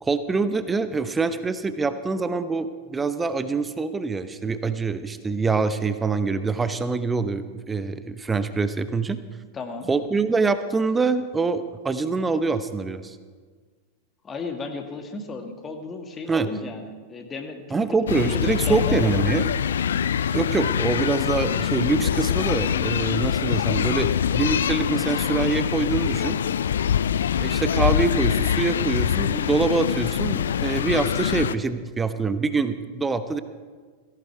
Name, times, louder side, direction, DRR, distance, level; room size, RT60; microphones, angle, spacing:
voice 1, 0.0-9.2 9.9-13.2 16.3-16.5 17.7-19.5 20.3-26.4 27.4-33.4, right 4 dB, 15° right, 12 dB, 0.9 m, -25 dB
voice 2, 9.5-9.9 14.2-17.8 18.1-19.2, left 3 dB, 20° left, 5 dB, 2.0 m, -34 dB
sound 1, 18.1-31.6, left 8 dB, 65° left, 0.4 m, -24 dB
18.0 x 17.0 x 4.7 m, 1.5 s
figure-of-eight pair, 90°, 0 cm